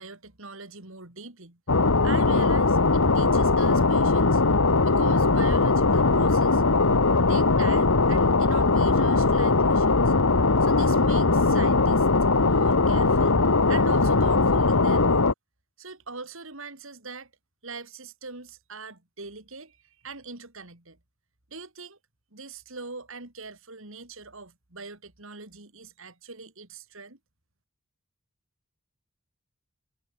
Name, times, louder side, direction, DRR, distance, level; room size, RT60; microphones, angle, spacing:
voice 1, 0.0-1.6 2.0-4.4 4.8-6.6 7.3-10.1 10.6-12.1 12.4-13.4 13.7-15.2 15.8-17.3 17.6-21.0 21.5-22.0 22.3-27.2, right 4 dB, 60° right, 3.2 m, -42 dB
sound 1, 1.7-15.3, left 3 dB, 70° left, 1.3 m, -20 dB
head